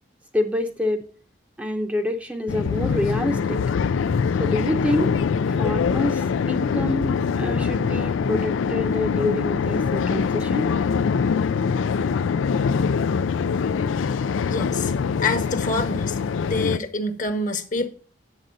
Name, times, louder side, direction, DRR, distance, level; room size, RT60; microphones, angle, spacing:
voice 1, 0.3-1.0 1.6-3.6 4.4-5.1 5.6-10.7, left 1 dB, 5° right, 0.7 m, -27 dB
sound 1, 2.5-16.8, left 6 dB, 85° left, 0.4 m, -23 dB
voice 2, 14.5-14.9 15.2-16.2 16.4-17.9, left 3 dB, 40° left, 1.1 m, -26 dB
9.1 x 7.7 x 3.9 m
head